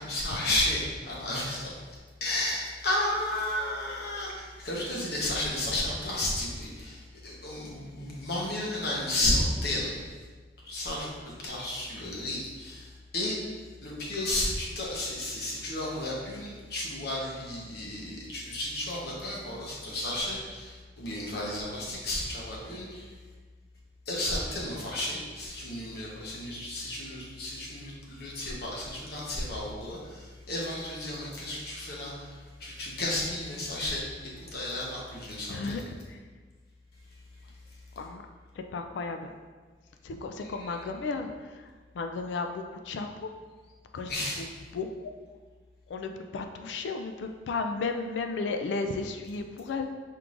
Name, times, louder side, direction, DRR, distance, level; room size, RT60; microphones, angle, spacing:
voice 1, 0.0-1.8 2.2-10.0 10.7-11.1 11.4-13.4 13.8-23.1 24.1-35.9 40.4-40.8 44.1-44.4, left 1 dB, 60° left, -3 dB, 1.0 m, -33 dB
voice 2, 35.5-35.8 36.1-36.2 38.0-38.2 38.6-39.3 40.0-43.3 43.9-44.1 44.7-45.1 45.9-49.9, left 4 dB, 85° left, 6 dB, 0.3 m, -34 dB
4.5 x 3.6 x 2.5 m, 1.4 s
head